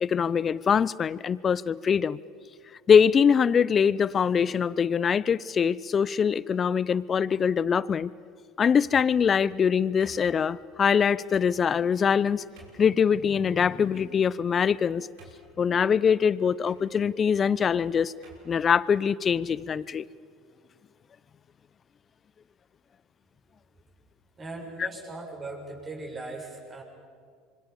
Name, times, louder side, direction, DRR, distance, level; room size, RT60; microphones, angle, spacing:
voice 1, 0.0-2.2 2.9-8.1 8.6-12.4 12.8-15.1 15.6-18.1 18.5-20.0 24.8-24.9, left 7 dB, 35° left, 20 dB, 0.7 m, -23 dB
sound 1, 8.8-9.3 10.0-10.7 11.3-11.5 12.1-12.2 12.6-12.9 13.9-14.4 14.8-14.9 15.2-15.7 16.6-16.8 17.7-17.8 18.2-18.5, right 3 dB, 70° right, 6.0 m, -52 dB
voice 2, 24.4-26.8, right 2 dB, 30° right, 0 dB, 7.8 m, -39 dB
27.0 x 24.5 x 7.2 m, 2.1 s
hypercardioid pair, 75°, 0 cm